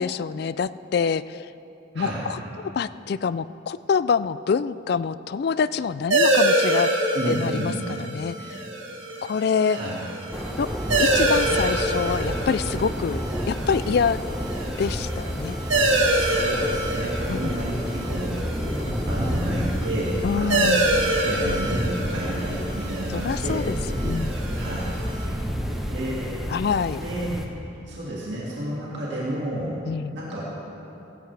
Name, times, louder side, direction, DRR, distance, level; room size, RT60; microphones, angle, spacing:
voice 1, 0.0-1.5 1.9-6.9 7.3-7.7 8.0-8.6 9.2-9.8 10.6-10.7 11.0-14.2 14.8-15.6 17.3-17.5 20.2-20.9 23.1-23.8 24.0-24.4 26.5-27.0 29.9-30.2, left 6 dB, 55° left, 16 dB, 0.3 m, -26 dB
voice 2, 1.9-2.3 7.1-7.7 9.7-10.0 16.0-18.4 19.0-20.7 21.2-23.7 24.5-25.4 25.7-26.4 27.0-27.4 27.8-29.8 30.1-30.5, right 1 dB, 65° right, -6 dB, 2.1 m, -31 dB
sound 1, 6.1-25.2, right 1 dB, 85° right, 1.7 m, -26 dB
sound 2, 10.3-27.5, equal, ahead, 0.9 m, -30 dB
16.0 x 16.0 x 3.4 m, 2.9 s
head